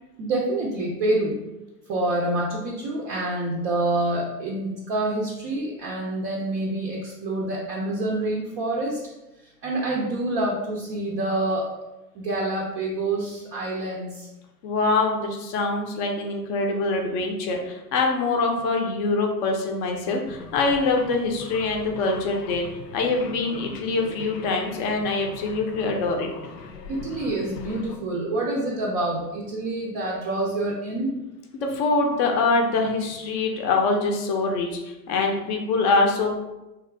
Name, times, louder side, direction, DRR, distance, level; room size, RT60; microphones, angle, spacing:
voice 1, 0.2-1.4 1.9-9.0 9.4-11.7 12.1-14.3 26.9-31.1, right 2 dB, 30° right, -2 dB, 0.5 m, -27 dB
voice 2, 14.6-22.6 22.9-26.3 31.5-36.3, left 3 dB, 35° left, 2 dB, 0.6 m, -24 dB
sound 1, 20.3-28.0, left 4 dB, 75° left, 0.6 m, -41 dB
2.8 x 2.4 x 3.2 m, 1.0 s
hypercardioid pair, 100°, 49 cm